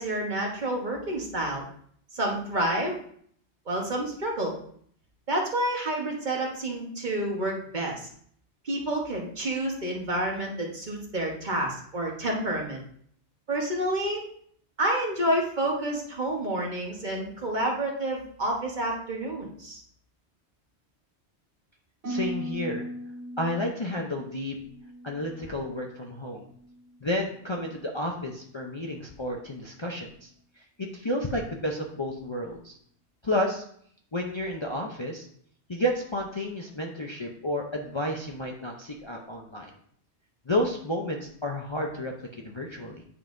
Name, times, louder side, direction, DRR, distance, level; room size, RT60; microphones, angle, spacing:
voice 1, 0.0-1.7 2.1-3.0 3.7-4.5 5.3-8.1 8.6-12.8 13.5-14.2 14.8-19.8, right 1 dB, 45° right, -1 dB, 1.4 m, -29 dB
Harp, 22.0-26.1 26.4-27.0 27.5-27.8, equal, 75° right, 2.2 m, -39 dB
voice 2, 22.1-22.9 23.4-24.6 25.0-26.4 27.0-30.3 30.8-32.8 33.2-33.6 34.1-35.3 35.7-39.7 40.5-43.0, left 1 dB, 30° left, 0 dB, 0.7 m, -31 dB
9.7 x 5.4 x 2.6 m, 0.62 s
omnidirectional pair, 1.1 m